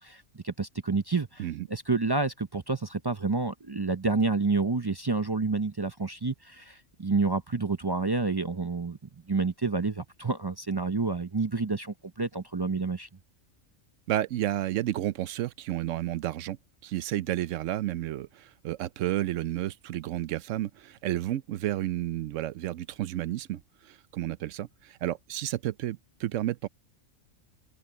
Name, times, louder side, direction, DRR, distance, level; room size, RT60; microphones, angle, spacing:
voice 1, 0.0-9.0 9.3-13.1, right 3 dB, 30° right, 0.4 m, -29 dB
voice 2, 14.1-16.6 16.8-26.7, right 14 dB, 80° right, 1.0 m, -31 dB
omnidirectional pair, 1.3 m